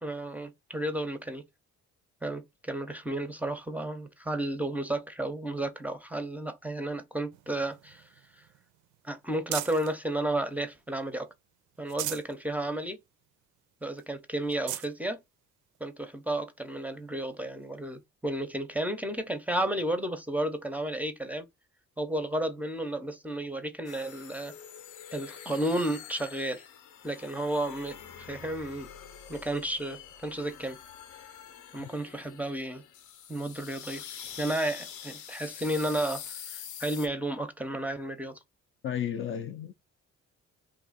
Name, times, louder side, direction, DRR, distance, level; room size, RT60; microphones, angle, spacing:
voice 1, 0.0-1.4 2.2-8.0 9.0-11.3 11.8-13.0 13.8-15.2 15.8-21.5 22.0-24.5 25.1-26.6 27.0-28.9 29.3-30.8 31.7-32.8 33.3-34.0 34.4-36.2 36.5-38.4, right 1 dB, 5° right, 0.5 m, -32 dB
sound 1, 7.3-10.0 10.5-11.3 11.7-12.4 12.8-12.9 13.3-13.4 14.0-14.1 14.4-14.9 15.7-15.8 17.6-17.7, right 13 dB, 80° right, 0.5 m, -40 dB
sound 2, 23.8-37.1, left 8 dB, 75° left, 0.7 m, -45 dB
voice 2, 38.8-39.7, left 9 dB, 45° left, 0.4 m, -33 dB
2.6 x 2.4 x 4.0 m
cardioid pair, 90°, 30 cm